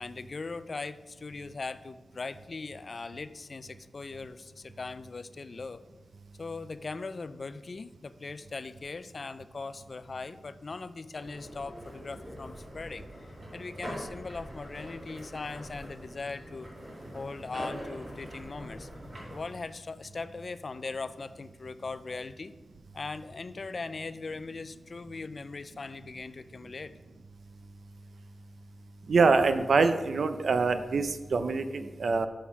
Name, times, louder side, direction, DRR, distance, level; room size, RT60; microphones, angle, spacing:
voice 1, 0.0-5.8 6.4-13.2 13.5-16.7 17.1-18.9 19.3-22.5 22.9-27.0, left 3 dB, 50° left, 14 dB, 0.3 m, -40 dB
sound 1, 11.1-19.4, equal, 45° right, 2.7 m, -43 dB
voice 2, 29.1-32.3, right 4 dB, 75° right, 10 dB, 0.5 m, -25 dB
6.4 x 5.6 x 5.6 m, 1.2 s
wide cardioid pair, 105°, 0 cm